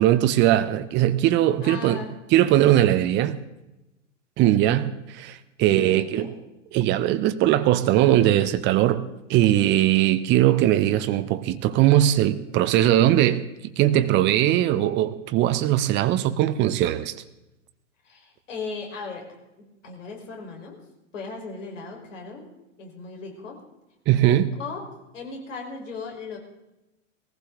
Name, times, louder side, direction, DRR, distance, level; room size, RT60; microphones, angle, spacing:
voice 1, 0.0-2.0 2.3-3.4 4.4-6.3 6.7-9.0 9.3-13.4 13.8-17.1 24.1-24.5, right 13 dB, 30° right, 10 dB, 0.8 m, -20 dB
voice 2, 1.6-2.1 5.8-6.3 18.0-19.3 19.6-20.8 21.1-22.5 22.8-23.6 24.6-24.9 25.1-26.4, left 4 dB, 70° left, 1 dB, 4.5 m, -37 dB
19.5 x 15.5 x 3.8 m, 0.95 s
hypercardioid pair, 110°, 38 cm